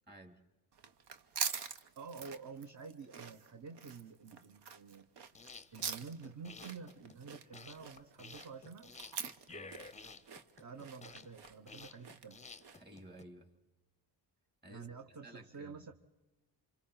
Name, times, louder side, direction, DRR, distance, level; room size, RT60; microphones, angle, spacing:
voice 1, 0.1-0.4 9.5-9.8 12.7-13.5 14.6-15.9, right 1 dB, 25° right, 4 dB, 3.1 m, -54 dB
sound 1, 0.7-13.0, right 6 dB, 90° right, 1.0 m, -45 dB
voice 2, 2.0-5.1 5.7-8.9 10.6-12.4 14.7-15.9, right 5 dB, 45° right, 5 dB, 1.1 m, -49 dB
sound 2, 5.2-13.2, left 4 dB, 20° left, 0.6 m, -53 dB
28.0 x 27.0 x 3.9 m, 1.2 s
cardioid pair, 90°, 40 cm